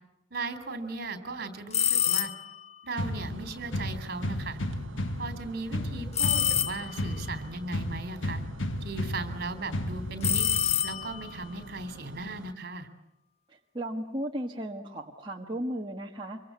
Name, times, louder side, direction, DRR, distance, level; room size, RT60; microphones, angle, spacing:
voice 1, 0.3-2.3 2.8-4.6 5.2-8.4 8.8-10.5 10.8-12.9, right 3 dB, 55° right, 10 dB, 3.4 m, -37 dB
sound 1, 1.7-2.6 6.2-7.1 10.2-11.4, left 10 dB, 35° left, 0.9 m, -27 dB
sound 2, 3.0-11.0, left 1 dB, 85° left, 1.6 m, -34 dB
sound 3, 3.0-12.5, right 3 dB, 80° right, 0.9 m, -47 dB
voice 2, 13.5-16.4, right 1 dB, 25° right, 0 dB, 1.6 m, -35 dB
25.5 x 23.5 x 8.3 m, 0.88 s
head